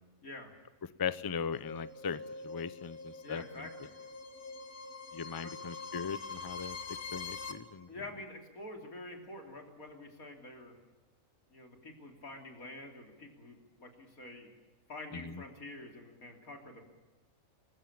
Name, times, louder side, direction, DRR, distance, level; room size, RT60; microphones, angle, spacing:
voice 1, 0.2-0.5 3.2-3.9 5.4-5.5 7.9-10.7 11.5-14.5 14.9-16.8, left 2 dB, 70° left, 3 dB, 3.9 m, -47 dB
voice 2, 1.0-3.6 5.1-6.8 7.1-7.9 15.1-15.4, left 6 dB, 30° left, 15 dB, 0.4 m, -38 dB
sound 1, 1.5-7.5, left 4 dB, 85° left, 2.3 m, -44 dB
27.0 x 15.5 x 8.8 m, 1.2 s
omnidirectional pair, 1.5 m